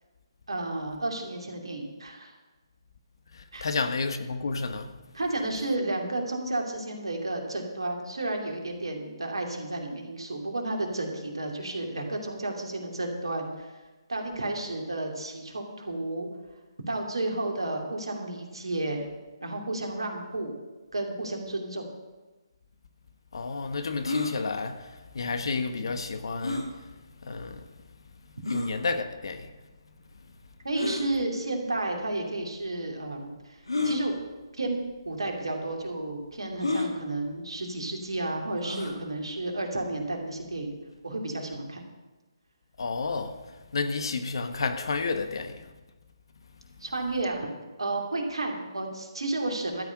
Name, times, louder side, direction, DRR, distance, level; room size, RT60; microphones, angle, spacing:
voice 1, 0.5-2.3 3.5-3.7 5.1-13.7 14.1-16.3 16.9-19.1 19.4-20.5 20.9-21.9 30.6-34.1 34.5-34.8 35.0-40.7 41.0-41.8 46.8-47.5 47.8-49.8, right 2 dB, 80° right, 2.7 m, -32 dB
voice 2, 3.3-4.9 23.3-26.7 27.2-27.7 28.5-29.5 42.8-45.7, left 4 dB, 65° left, 1.2 m, -31 dB
sound 1, 24.0-24.3 26.4-26.7 27.5-27.6 28.4-28.7 30.7-31.1 32.1-32.2 33.7-34.0 34.9-35.1 35.3-35.4 36.6-36.9 38.6-39.0, left 2 dB, 85° left, 2.1 m, -29 dB
13.0 x 5.7 x 8.8 m
figure-of-eight pair, 145°, 3 cm